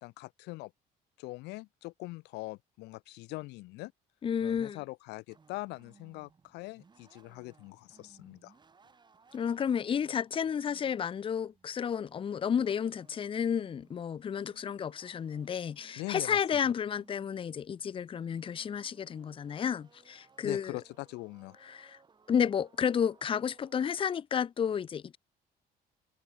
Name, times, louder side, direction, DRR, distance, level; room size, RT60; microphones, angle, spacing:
voice 1, 0.0-0.7 1.2-3.9 4.4-8.5 16.0-16.4 20.4-21.6, left 22 dB, 90° left, 0.7 m, -42 dB
voice 2, 4.2-4.8 9.3-20.8 21.6-22.0 22.3-25.2, left 7 dB, 30° left, 0.6 m, -31 dB
sound 1, 5.3-24.2, right 5 dB, 25° right, 2.5 m, -64 dB
cardioid pair, 110°, 17 cm